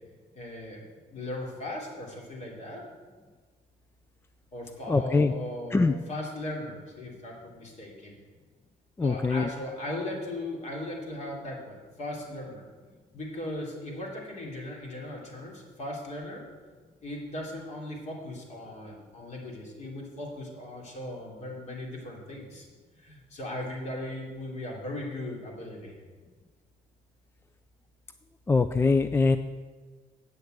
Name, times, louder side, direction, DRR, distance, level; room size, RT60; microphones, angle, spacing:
voice 1, 0.3-0.8 1.1-2.9 4.5-8.1 9.0-12.6 13.1-16.4 17.0-22.7 23.0-26.0, left 1 dB, 45° left, -1 dB, 3.0 m, -38 dB
voice 2, 4.9-5.3 5.7-5.9 9.0-9.5 28.5-29.4, left 3 dB, 15° left, 11 dB, 0.3 m, -23 dB
8.5 x 6.6 x 8.0 m, 1.4 s
cardioid pair, 110°, 17 cm